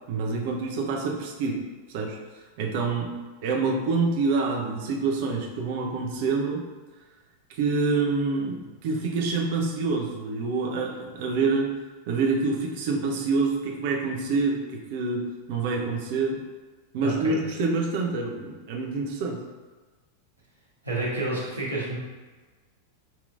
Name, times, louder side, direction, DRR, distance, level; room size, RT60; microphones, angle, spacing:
voice 1, 0.1-1.6 1.9-2.2 2.6-3.2 3.4-6.6 7.5-11.8 12.1-16.4 16.9-19.4, right 4 dB, 50° right, 0 dB, 0.7 m, -27 dB
voice 2, 17.0-17.4 20.8-22.0, right 2 dB, 85° right, -7 dB, 1.2 m, -29 dB
5.3 x 2.9 x 2.4 m, 1.3 s
figure-of-eight pair, 90°, 0 cm